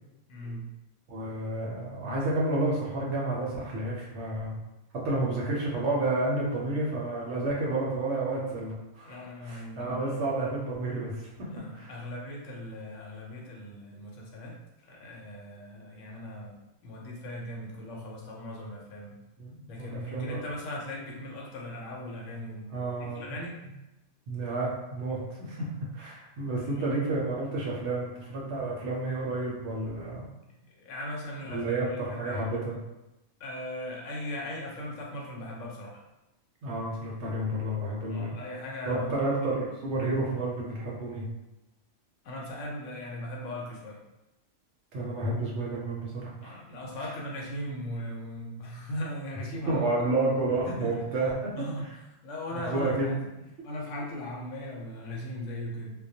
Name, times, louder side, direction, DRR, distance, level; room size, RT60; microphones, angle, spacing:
voice 1, 0.3-0.7 9.0-10.2 11.4-14.5 14.9-19.2 19.7-23.6 26.6-27.0 30.4-32.4 33.4-36.0 38.1-39.3 42.2-44.0 46.4-49.9 50.7-51.1 51.5-51.9 52.2-53.2 53.6-56.1, left 1 dB, 75° left, -2 dB, 0.9 m, -39 dB
voice 2, 1.1-4.6 5.0-9.2 9.4-11.5 11.7-11.9 19.4-20.4 22.7-23.3 24.3-25.7 25.9-30.3 31.4-32.8 36.6-38.3 38.9-41.3 44.9-46.6 49.7-51.5 52.5-53.1, right 2 dB, 65° right, -4 dB, 0.9 m, -30 dB
2.3 x 2.0 x 2.6 m, 0.97 s
omnidirectional pair, 1.3 m